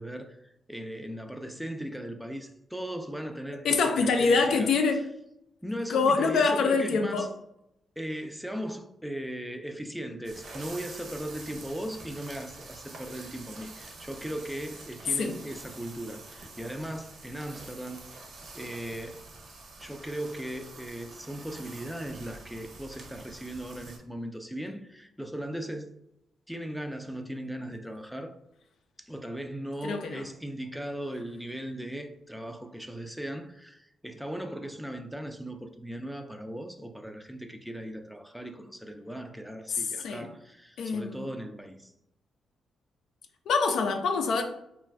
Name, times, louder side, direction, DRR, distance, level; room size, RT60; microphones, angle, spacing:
voice 1, 0.0-5.0 5.6-7.3 8.0-18.1 18.5-19.2 19.8-25.9 26.5-28.4 29.0-41.9, right 1 dB, ahead, 0.3 m, -38 dB
voice 2, 3.6-5.0 5.9-7.3 15.2-15.3 29.8-30.2 39.7-40.3 40.8-41.3 43.5-44.4, left 4 dB, 75° left, 0.4 m, -25 dB
sound 1, 10.2-24.0, right 3 dB, 65° right, 0.7 m, -47 dB
2.4 x 2.2 x 3.3 m
cardioid pair, 80°, 0 cm